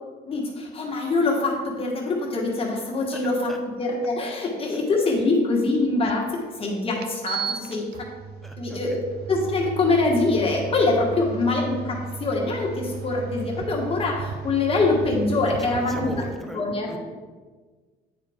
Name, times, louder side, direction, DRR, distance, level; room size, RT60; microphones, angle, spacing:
voice 1, 0.2-3.5 3.8-7.9 8.6-9.0 9.3-16.1 16.5-16.9, left 3 dB, 35° left, -2 dB, 1.4 m, -24 dB
voice 2, 3.1-3.6 8.4-9.0 15.4-17.0, right 1 dB, ahead, 3 dB, 0.7 m, -38 dB
sound 1, 6.0-6.1 7.0-16.4, right 5 dB, 70° right, 0.5 m, -35 dB
8.8 x 4.9 x 3.5 m, 1.4 s
cardioid pair, 110°, 17 cm